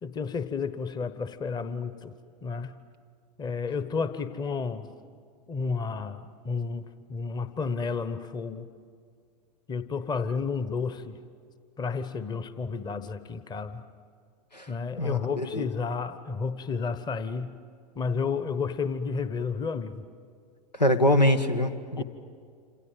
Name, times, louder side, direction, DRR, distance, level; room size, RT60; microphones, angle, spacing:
voice 1, 0.0-2.1 2.4-2.8 3.4-4.9 5.5-8.7 9.7-11.2 11.8-13.8 14.7-17.6 17.9-20.0 22.0-22.1, left 5 dB, 20° left, 12 dB, 1.2 m, -31 dB
voice 2, 15.0-15.6 20.7-22.0, left 1 dB, 90° left, 9 dB, 1.4 m, -24 dB
28.0 x 27.0 x 7.5 m, 2.1 s
figure-of-eight pair, 90°, 21 cm